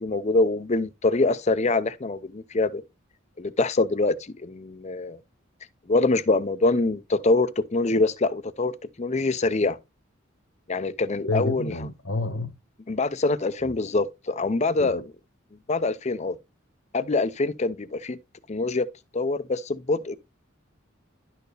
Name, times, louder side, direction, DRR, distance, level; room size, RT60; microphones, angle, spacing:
voice 1, 0.0-2.8 3.4-5.2 5.9-8.7 9.0-9.8 10.7-11.7 12.9-15.0 15.7-16.4 16.9-18.2 18.5-18.8 19.1-20.2, left 3 dB, 35° left, 0.6 m, -24 dB
voice 2, 11.2-12.5 13.6-13.7 14.8-15.0, left 2 dB, 70° left, 1.3 m, -29 dB
11.5 x 4.6 x 3.3 m
head